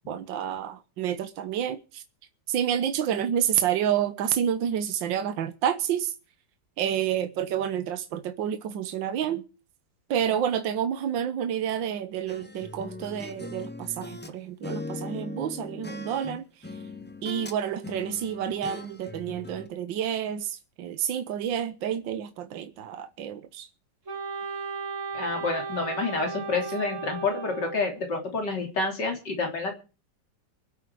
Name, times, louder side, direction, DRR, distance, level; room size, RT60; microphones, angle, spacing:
voice 1, 0.1-2.0 2.5-6.1 6.8-9.4 10.1-16.5 17.2-23.7, right 9 dB, 80° right, 1.7 m, -29 dB
sound 1, 12.3-14.3 14.6-17.6 17.8-19.7, left 2 dB, 15° left, 0.3 m, -40 dB
Wind instrument woodwind instrument, 24.1-28.0, right 5 dB, 40° right, 2.1 m, -35 dB
voice 2, 25.1-29.7, left 3 dB, 65° left, 4.0 m, -28 dB
24.0 x 8.4 x 4.8 m
omnidirectional pair, 2.0 m